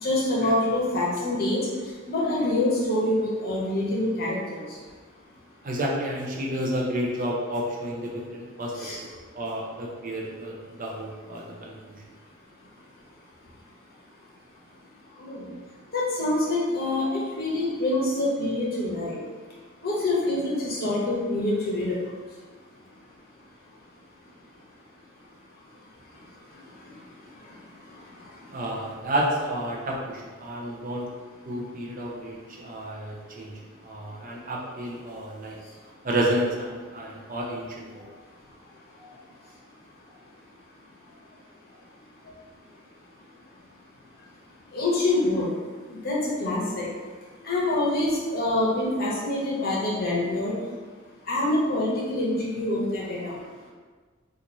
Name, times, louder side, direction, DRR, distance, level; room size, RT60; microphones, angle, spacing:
voice 1, 0.0-1.6 2.1-4.6 8.8-9.0 15.2-15.5 15.9-17.1 17.4-19.2 19.8-22.0 44.7-45.5 45.9-46.9 47.4-50.6 51.3-53.3, left 1 dB, 50° left, -5 dB, 0.9 m, -25 dB
voice 2, 5.6-8.9 9.3-12.0 28.5-31.1 31.4-35.6 36.0-38.1, right 1 dB, 40° right, -2 dB, 0.6 m, -30 dB
3.0 x 2.4 x 3.9 m, 1.5 s
head